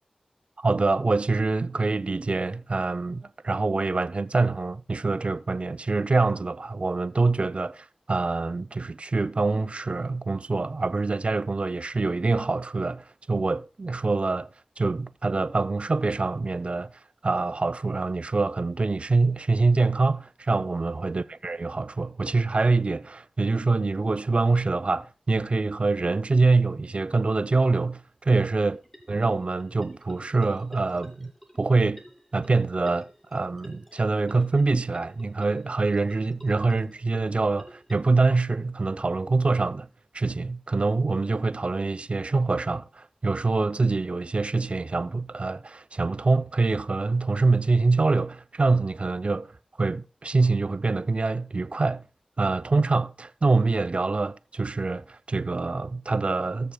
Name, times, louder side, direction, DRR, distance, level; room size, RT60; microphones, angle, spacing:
voice 1, 0.6-14.5 14.8-16.9 17.2-28.8 29.1-31.3 31.6-32.0 32.3-39.9 40.1-49.5 49.8-52.0 52.4-56.7, right 3 dB, 50° right, 0.5 m, -25 dB
sound 1, 28.5-37.9, equal, 5° left, 2.4 m, -50 dB
19.0 x 6.6 x 2.3 m
cardioid pair, 40°, 3 cm